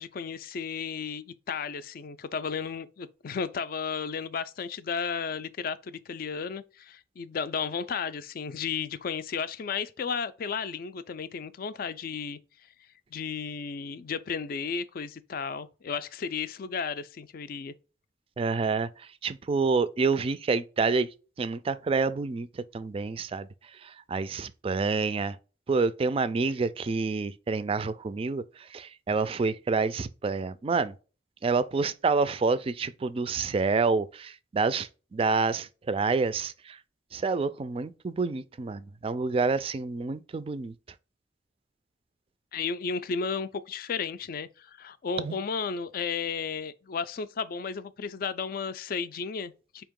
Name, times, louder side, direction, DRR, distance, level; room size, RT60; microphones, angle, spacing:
voice 1, 0.0-12.4 13.1-17.7 42.5-49.8, left 6 dB, 55° left, 0.4 m, -33 dB
voice 2, 18.4-18.9 19.2-21.1 21.4-23.5 23.8-25.4 25.7-28.4 28.7-30.9 31.4-36.8 37.1-40.7 45.2-45.4, right 4 dB, 30° right, 0.3 m, -28 dB
4.4 x 2.9 x 3.5 m
head